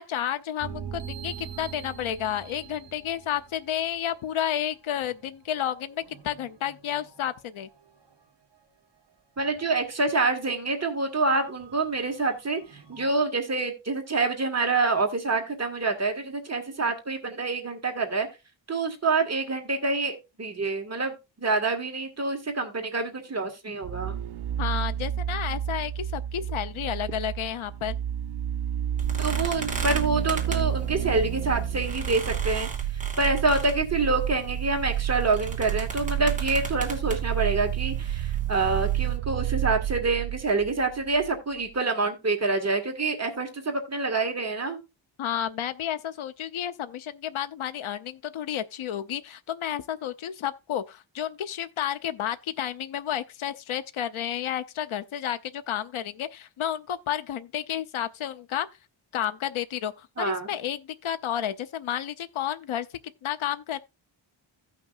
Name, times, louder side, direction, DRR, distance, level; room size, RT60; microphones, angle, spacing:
voice 1, 0.0-7.7 24.6-28.0 45.2-58.7 59.1-62.9 63.2-63.8, left 10 dB, 80° left, 0.7 m, -31 dB
sound 1, 0.6-4.6 5.0-8.2 8.5-8.7 9.1-10.1 10.5-10.6 11.3-13.1, right 8 dB, 55° right, 1.3 m, -44 dB
voice 2, 9.4-12.6 12.9-18.3 18.7-24.1 29.2-32.7 33.2-44.8 60.2-60.5, right 3 dB, 30° right, 1.6 m, -27 dB
sound 2, 23.8-41.4 41.6-41.7, right 11 dB, 85° right, 0.6 m, -30 dB
sound 3, 29.0-39.2, right 5 dB, 15° right, 2.3 m, -36 dB
16.0 x 5.9 x 2.4 m
wide cardioid pair, 160°, 48 cm